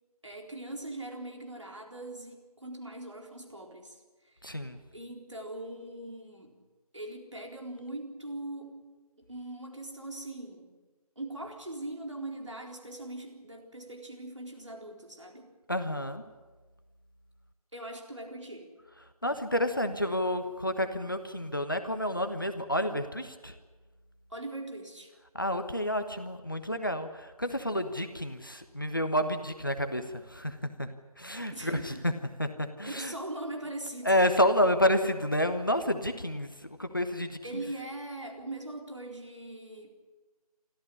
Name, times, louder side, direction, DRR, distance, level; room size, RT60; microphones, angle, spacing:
voice 1, 0.2-4.0 4.3-4.4 4.9-6.6 6.9-8.9 9.3-10.8 11.2-15.6 17.7-18.7 24.3-25.1 31.5-32.0 32.8-34.3 37.4-39.9, right 1 dB, 50° right, 2 dB, 3.9 m, -41 dB
voice 2, 4.4-4.8 15.7-16.2 19.2-23.5 25.3-30.0 30.3-30.5 30.8-30.9 31.2-32.1 32.4-33.1 34.0-36.5 36.8-37.3, left 1 dB, 35° left, 8 dB, 1.2 m, -29 dB
25.5 x 14.0 x 10.0 m, 1.3 s
figure-of-eight pair, 180°, 19 cm